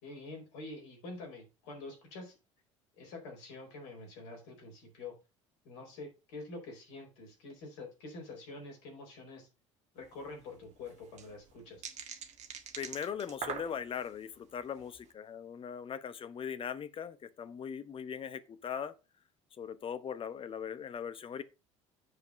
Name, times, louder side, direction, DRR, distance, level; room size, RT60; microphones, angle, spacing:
voice 1, 0.0-2.4 3.0-5.1 5.6-9.5 9.9-12.0, left 3 dB, 65° left, 4.6 m, -46 dB
sound 1, 10.0-10.1 10.3-10.4 10.9-14.1 14.7-15.0, right 8 dB, 45° right, 1.5 m, -43 dB
voice 2, 12.8-18.9 19.6-21.4, left 7 dB, 35° left, 1.0 m, -40 dB
7.9 x 5.4 x 5.3 m
figure-of-eight pair, 60°, 16 cm